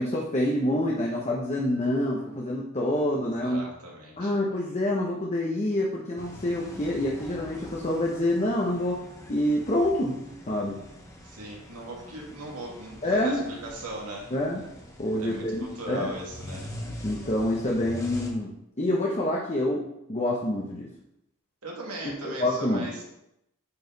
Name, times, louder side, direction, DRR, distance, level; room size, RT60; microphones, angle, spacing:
voice 1, 0.0-3.6 4.2-9.0 9.3-10.2 10.5-10.8 13.0-13.4 14.3-14.6 15.0-16.1 17.0-19.8 20.1-20.9 22.0-22.9, left 1 dB, 30° left, -2 dB, 0.9 m, -27 dB
voice 2, 3.2-4.3 11.2-14.3 15.2-16.7 21.6-23.0, right 1 dB, 90° right, -2 dB, 2.4 m, -38 dB
sound 1, 6.2-18.3, left 1 dB, 15° left, 1.1 m, -43 dB
9.5 x 4.9 x 4.0 m, 0.83 s
head